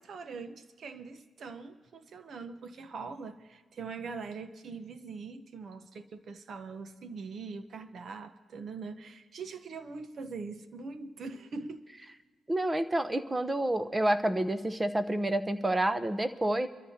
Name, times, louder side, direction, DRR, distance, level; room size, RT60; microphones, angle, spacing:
voice 1, 0.0-11.9, right 4 dB, 60° right, 1.0 m, -42 dB
voice 2, 12.5-16.7, right 1 dB, 20° right, 0.9 m, -29 dB
24.5 x 13.5 x 2.9 m
cardioid pair, 70°, 0 cm